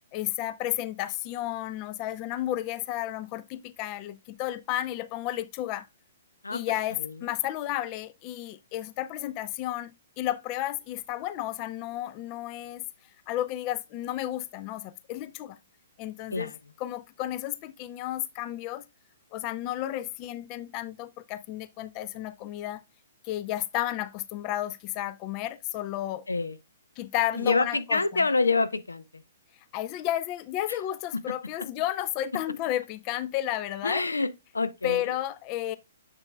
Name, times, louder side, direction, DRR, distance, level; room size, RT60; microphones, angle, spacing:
voice 1, 0.1-5.9 6.5-12.8 13.3-15.6 16.0-16.5 16.8-18.8 19.3-22.8 23.2-26.2 27.0-28.2 29.7-34.0 34.8-35.8, left 13 dB, 35° left, 0.4 m, -32 dB
voice 2, 6.4-7.1 16.3-16.6 26.3-26.6 27.3-29.0 30.7-30.8 33.8-34.3 34.5-35.1, left 3 dB, 85° left, 0.6 m, -27 dB
6.8 x 6.7 x 2.2 m
figure-of-eight pair, 125°, 0 cm